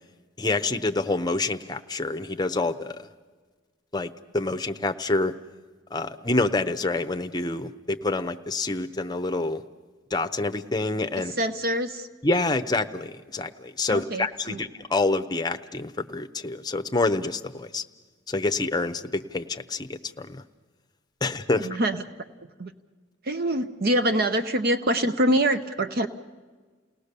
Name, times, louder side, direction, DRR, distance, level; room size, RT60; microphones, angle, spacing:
voice 1, 0.4-3.1 3.9-5.3 5.9-9.6 10.1-11.3 12.2-17.8 18.3-20.4 21.2-21.7, left 2 dB, 20° left, 8 dB, 0.7 m, -27 dB
voice 2, 11.4-12.1 13.9-14.6 21.6-22.0 22.6-22.7 23.2-26.1, right 1 dB, 50° right, 9 dB, 0.7 m, -25 dB
29.5 x 18.5 x 6.7 m, 1.4 s
head